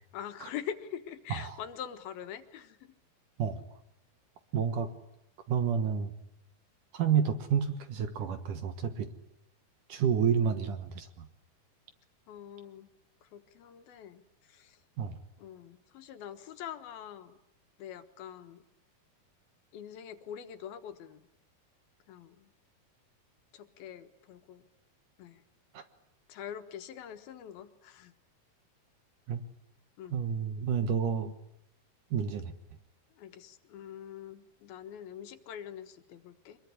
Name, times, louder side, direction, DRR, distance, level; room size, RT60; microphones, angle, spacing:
voice 1, 0.1-2.9 12.3-12.9 13.2-14.8 15.4-17.4 17.8-18.6 19.7-21.3 22.1-22.5 23.5-24.6 25.2-25.4 26.3-28.1 30.0-30.2 33.2-36.6, left 9 dB, 70° left, 8 dB, 3.1 m, -44 dB
voice 2, 4.5-4.9 5.5-6.1 6.9-9.1 9.9-11.3 15.0-15.2 25.7-25.8 29.3-29.4 30.1-31.3 32.1-32.5, right 7 dB, 65° right, 9 dB, 2.5 m, -29 dB
25.0 x 22.0 x 9.9 m, 0.79 s
omnidirectional pair, 4.6 m